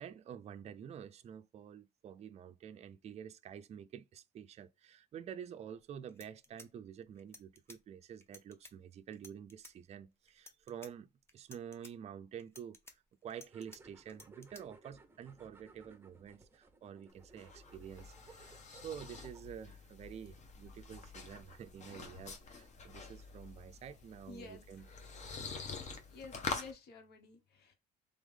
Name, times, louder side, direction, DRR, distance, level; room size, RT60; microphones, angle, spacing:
voice 1, 0.0-24.9, right 8 dB, 40° right, 0.4 m, -49 dB
sound 1, 5.7-5.8 6.1-7.8 8.2-8.7 9.1-9.7 10.3-10.9 11.3-11.9 12.4-13.8 14.1-14.6, left 2 dB, 15° left, 0.7 m, -55 dB
sound 2, 13.5-19.7, right 3 dB, 15° right, 0.9 m, -61 dB
sound 3, 17.1-26.7, left 4 dB, 40° left, 1.0 m, -46 dB
voice 2, 24.3-24.6 26.1-27.7, left 4 dB, 65° left, 1.4 m, -51 dB
3.5 x 3.4 x 3.6 m
cardioid pair, 105°, 18 cm